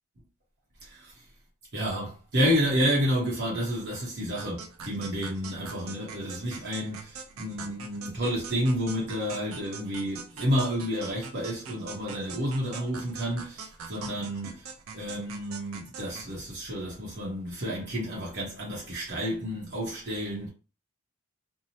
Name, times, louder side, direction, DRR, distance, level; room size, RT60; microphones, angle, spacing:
voice 1, 0.8-1.2 1.7-20.5, equal, 55° right, 0.8 m, -30 dB
sound 1, 4.4-16.3, right 5 dB, 90° right, 0.4 m, -43 dB
2.7 x 2.0 x 2.7 m
head